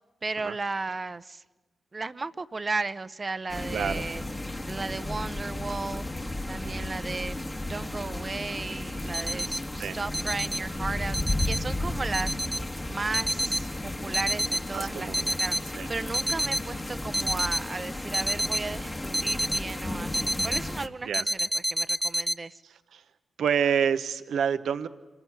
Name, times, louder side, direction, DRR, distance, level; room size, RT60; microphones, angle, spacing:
voice 1, 0.2-1.4 1.9-4.2 4.6-6.1 6.5-7.4 7.7-11.2 11.4-12.4 12.8-15.6 15.9-22.6, right 3 dB, 40° right, 14 dB, 0.8 m, -35 dB
sound 1, 3.5-20.9, left 1 dB, 20° left, 1.5 m, -34 dB
voice 2, 3.7-4.0 6.6-6.9 9.3-9.5 9.8-10.0 14.7-15.3 15.7-15.9 21.0-21.2 22.9-23.0 23.4-24.9, right 7 dB, 80° right, 10 dB, 0.8 m, -28 dB
sound 2, 9.1-9.6 10.1-10.6 11.1-11.6 12.1-12.6 13.1-13.6 14.1-14.6 15.1-15.6 16.1-16.6 17.1-17.6 18.1-18.6 19.1-19.6 20.1-20.6 21.1-22.3, equal, 5° right, 0.8 m, -28 dB
26.0 x 15.5 x 9.5 m, 1.2 s
supercardioid pair, 50°, 0 cm